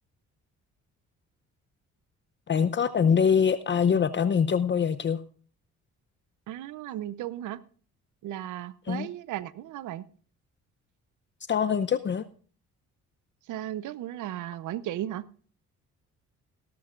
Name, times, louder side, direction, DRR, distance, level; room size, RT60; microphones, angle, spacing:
voice 1, 2.5-5.2 8.9-9.1 11.5-12.2, left 7 dB, 40° left, 0.7 m, -24 dB
voice 2, 6.5-7.6 8.2-10.0 13.5-15.3, right 12 dB, 85° right, 0.8 m, -35 dB
17.0 x 13.0 x 2.5 m
cardioid pair, 90°, 30 cm